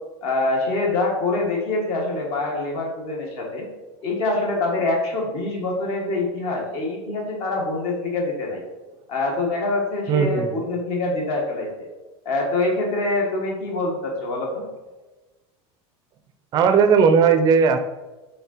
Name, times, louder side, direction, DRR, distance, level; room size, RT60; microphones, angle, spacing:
voice 1, 0.2-3.7 4.0-8.6 9.1-11.7 12.3-14.6, left 2 dB, 45° left, 0 dB, 1.7 m, -25 dB
voice 2, 10.1-10.6 16.5-17.8, right 6 dB, 30° right, 8 dB, 0.5 m, -17 dB
5.8 x 3.7 x 4.4 m, 1.1 s
supercardioid pair, 165°, 14 cm